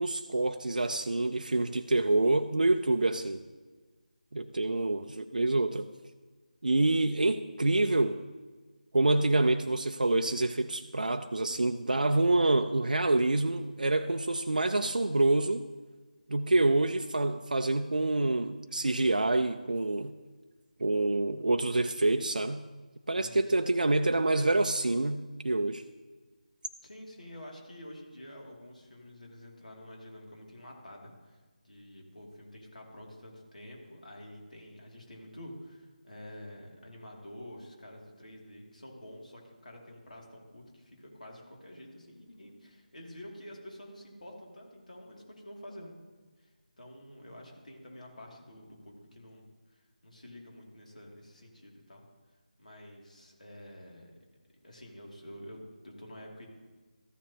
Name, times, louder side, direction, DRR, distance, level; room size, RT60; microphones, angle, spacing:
voice 1, 0.0-3.4 4.3-5.9 6.6-8.2 8.9-15.6 16.3-20.1 20.8-22.6 23.1-25.8, right 2 dB, 70° right, 6 dB, 0.5 m, -27 dB
voice 2, 23.2-23.5 26.8-45.9 46.4-46.5 46.8-49.4 49.7-52.1 52.6-54.1 54.6-56.5, left 1 dB, 60° left, -1 dB, 2.5 m, -48 dB
14.0 x 7.3 x 2.9 m, 1.3 s
figure-of-eight pair, 160°, 5 cm